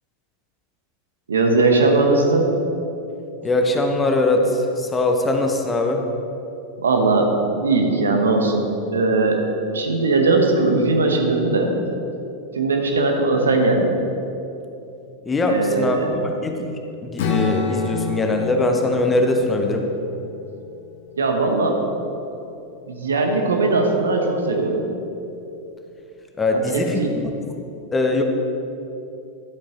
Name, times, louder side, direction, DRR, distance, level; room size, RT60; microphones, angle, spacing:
voice 1, 1.3-2.5 6.8-8.7 8.9-9.4 9.7-11.7 12.5-14.0 15.5-16.1 21.2-21.8 22.9-24.8 26.7-27.1, right 3 dB, 70° right, 3 dB, 1.0 m, -19 dB
voice 2, 3.4-6.0 15.3-19.8 26.4-27.2 27.9-28.2, left 2 dB, 15° left, 3 dB, 0.9 m, -21 dB
Strum, 17.2-21.4, left 5 dB, 55° left, 1.1 m, -28 dB
11.5 x 8.5 x 3.0 m, 2.8 s
figure-of-eight pair, 90°, 0 cm